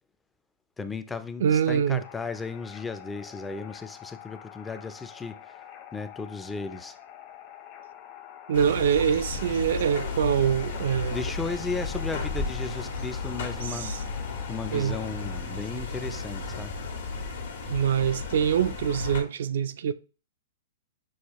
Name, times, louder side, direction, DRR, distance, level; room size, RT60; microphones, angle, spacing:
voice 1, 0.8-5.4 5.9-7.0 11.1-14.0 14.5-16.7, left 4 dB, 10° left, 0.3 m, -35 dB
voice 2, 1.4-2.0 8.5-11.2 13.7-14.0 14.7-15.0 17.7-19.9, right 8 dB, 70° right, 0.3 m, -24 dB
sound 1, 2.0-15.4, left 10 dB, 35° left, 0.7 m, -47 dB
sound 2, 8.5-19.2, left 4 dB, 75° left, 1.3 m, -34 dB
6.3 x 2.3 x 2.9 m
hypercardioid pair, 140°, 0 cm